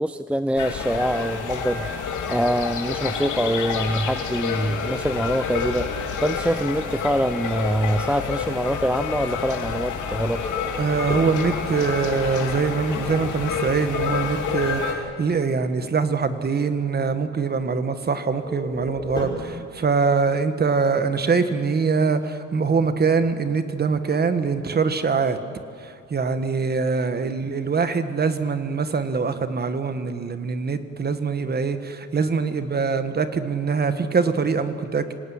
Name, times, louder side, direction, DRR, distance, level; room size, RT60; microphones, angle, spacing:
voice 1, 0.0-10.4, equal, 5° right, 12 dB, 0.5 m, -24 dB
sound 1, 0.6-14.9, left 6 dB, 85° left, 2.9 m, -29 dB
sound 2, 4.7-5.8 10.3-13.9 18.4-19.6, left 1 dB, 15° left, 5.3 m, -35 dB
voice 2, 10.8-25.4 25.8-35.1, right 5 dB, 35° right, 10 dB, 1.6 m, -23 dB
26.5 x 18.0 x 9.6 m, 2.4 s
cardioid pair, 135°, 29 cm